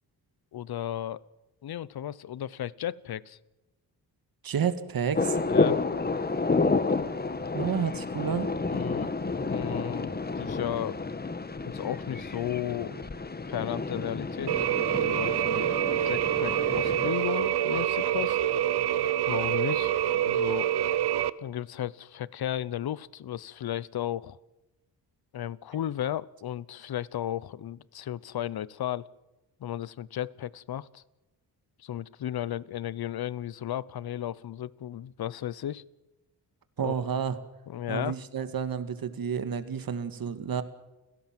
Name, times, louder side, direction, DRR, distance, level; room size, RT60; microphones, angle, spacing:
voice 1, 0.5-1.2 1.6-3.4 5.5-5.8 8.7-9.1 9.4-11.0 11.6-13.1 13.5-14.6 15.0-15.7 16.0-18.4 19.3-19.9 20.2-20.7 21.4-24.4 25.3-29.1 29.6-31.0 31.8-35.8 36.8-37.1 37.7-38.2, left 11 dB, 70° left, 21 dB, 0.8 m, -34 dB
voice 2, 4.4-5.4 7.5-8.5 36.8-37.4 37.9-40.6, right 7 dB, 60° right, 11 dB, 2.0 m, -30 dB
sound 1, 5.1-17.1, left 3 dB, 25° left, 1.4 m, -30 dB
sound 2, 14.5-21.3, right 12 dB, 80° right, 0.9 m, -26 dB
29.5 x 16.5 x 7.6 m, 1.0 s
wide cardioid pair, 125°, 39 cm